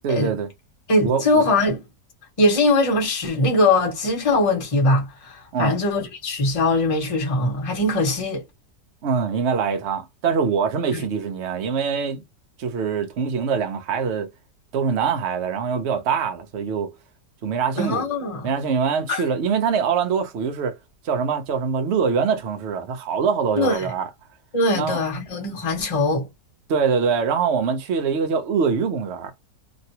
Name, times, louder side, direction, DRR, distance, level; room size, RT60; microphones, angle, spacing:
voice 1, 0.0-0.5 1.0-1.4 5.5-5.8 9.0-12.2 12.6-14.3 14.7-16.9 17.4-18.1 18.4-20.8 21.0-24.1 24.7-25.0 26.7-29.3, right 6 dB, 55° right, 0.8 m, -23 dB
voice 2, 0.9-1.8 2.4-8.4 10.9-11.0 17.8-18.5 19.1-19.2 23.6-23.9 24.5-26.3, left 2 dB, 25° left, 1.1 m, -21 dB
3.1 x 2.6 x 2.8 m
omnidirectional pair, 1.8 m